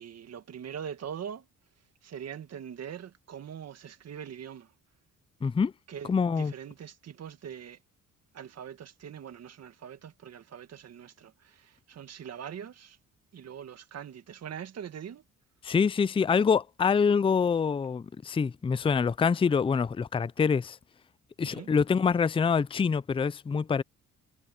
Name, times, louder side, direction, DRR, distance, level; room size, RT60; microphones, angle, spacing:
voice 1, 0.0-1.5 2.0-4.7 5.9-7.8 8.3-13.0 13.3-15.2 21.4-21.7, right 8 dB, 55° right, 1.9 m, -42 dB
voice 2, 5.4-5.7 6.1-6.5 15.6-20.8 21.4-23.8, left 6 dB, 20° left, 0.4 m, -25 dB
cardioid pair, 90°, 30 cm